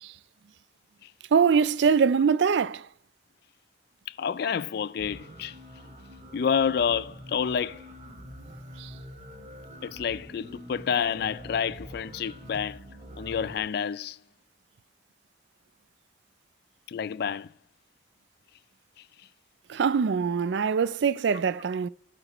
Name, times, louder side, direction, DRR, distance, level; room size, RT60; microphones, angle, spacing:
voice 1, 1.3-2.9 8.8-8.9 19.7-21.9, right 6 dB, 70° right, 0.4 m, -23 dB
voice 2, 4.1-5.6 6.3-7.8 9.8-12.8 13.2-14.2 16.9-17.5, left 7 dB, 55° left, 0.3 m, -29 dB
sound 1, 5.0-13.6, equal, 40° right, 1.9 m, -45 dB
17.0 x 7.8 x 3.0 m
head